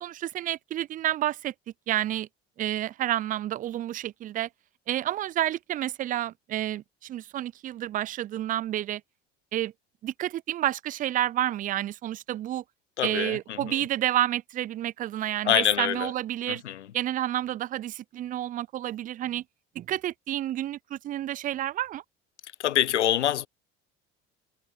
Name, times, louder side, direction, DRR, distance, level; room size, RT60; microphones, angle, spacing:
voice 1, 0.0-1.5 1.9-2.3 2.6-4.5 4.9-9.0 9.5-9.7 10.0-12.6 13.0-16.6 16.9-19.4 19.8-22.0, right 13 dB, 25° right, 0.3 m, -30 dB
voice 2, 13.0-13.6 15.4-16.1 16.5-16.9 22.6-23.5, left 11 dB, 85° left, 0.6 m, -25 dB
figure-of-eight pair, 65°, 34 cm